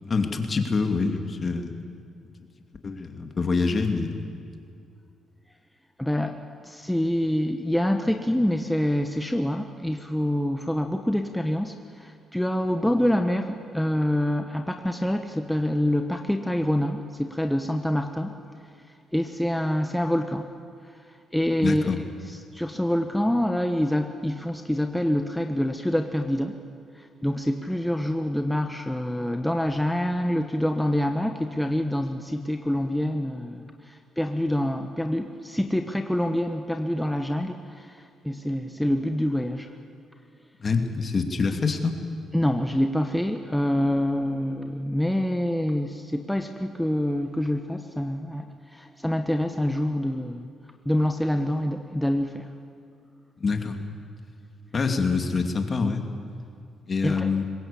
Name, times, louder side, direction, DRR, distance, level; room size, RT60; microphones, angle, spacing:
voice 1, 0.0-1.7 2.8-4.1 21.6-22.0 40.6-42.0 53.4-53.8 54.7-56.0 56.9-57.5, left 4 dB, 40° left, 5 dB, 2.4 m, -25 dB
voice 2, 6.0-18.3 19.1-20.5 21.3-21.9 22.3-26.6 26.9-39.7 42.3-50.5 50.8-52.5 57.0-57.3, left 1 dB, 5° left, 5 dB, 1.1 m, -26 dB
22.5 x 20.0 x 8.5 m, 2.3 s
cardioid pair, 90°, 0 cm